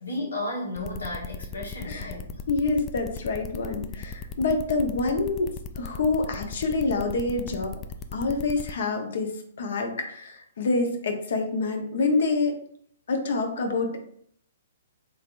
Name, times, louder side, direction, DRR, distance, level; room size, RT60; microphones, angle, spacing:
voice 1, 0.0-2.4, left 1 dB, 90° left, -3 dB, 1.3 m, -33 dB
sound 1, 0.8-8.7, left 5 dB, 25° left, 0.3 m, -37 dB
voice 2, 2.5-7.8 8.1-12.6 13.1-14.0, left 3 dB, 65° left, 3 dB, 0.8 m, -27 dB
3.4 x 3.4 x 2.5 m, 0.65 s
hypercardioid pair, 130°, 0 cm